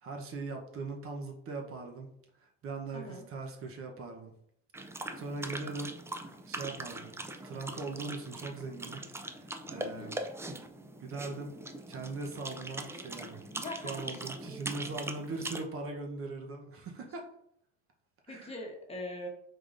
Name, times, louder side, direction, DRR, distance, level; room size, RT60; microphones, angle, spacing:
voice 1, 0.0-2.1 2.6-4.3 4.9-5.9 6.5-7.1 7.4-9.0 9.3-10.2 11.0-11.5 11.9-13.5 13.8-17.3 18.3-18.5, right 3 dB, 45° right, 2 dB, 0.8 m, -40 dB
voice 2, 2.9-3.2 9.8-10.2 13.5-14.3 18.3-19.3, left 1 dB, 20° left, 1 dB, 1.1 m, -42 dB
sound 1, 4.7-15.6, right 2 dB, 10° right, 0.3 m, -41 dB
4.9 x 3.8 x 2.5 m, 0.72 s
supercardioid pair, 105°, 30 cm